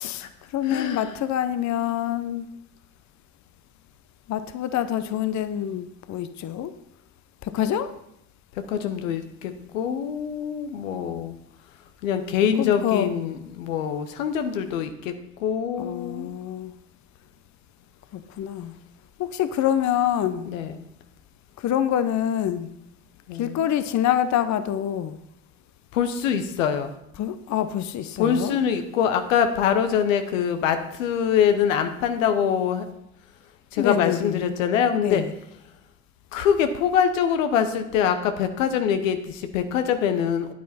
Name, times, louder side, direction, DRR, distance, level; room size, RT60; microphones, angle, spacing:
voice 1, 0.0-2.5 4.3-6.7 7.4-7.9 12.6-13.1 15.8-16.7 18.1-18.7 19.2-20.5 21.6-22.7 23.3-25.2 27.2-28.6 33.8-34.4 35.0-35.3, left 10 dB, 45° left, 12 dB, 0.8 m, -26 dB
voice 2, 0.7-1.1 8.7-11.4 12.0-15.1 15.4-16.3 20.5-20.7 23.3-23.6 25.9-26.9 28.2-32.9 33.7-35.2 36.3-40.5, left 8 dB, 85° left, 8 dB, 0.9 m, -24 dB
9.4 x 9.4 x 4.3 m, 0.78 s
hypercardioid pair, 65°, 38 cm